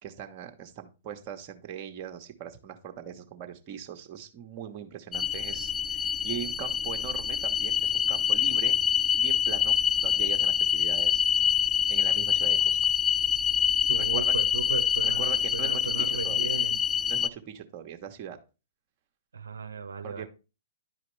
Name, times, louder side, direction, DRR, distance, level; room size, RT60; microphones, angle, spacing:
voice 1, 0.0-11.2 11.9-12.8 14.0-14.4 15.0-16.6 17.1-18.4 20.0-20.3, right 9 dB, 40° right, 4 dB, 1.2 m, -40 dB
sound 1, 5.1-17.3, left 8 dB, 15° left, 0.3 m, -25 dB
voice 2, 13.9-16.8 19.3-20.3, right 5 dB, 80° right, 6 dB, 0.7 m, -36 dB
11.0 x 5.0 x 3.2 m, 0.31 s
hypercardioid pair, 120°, 0 cm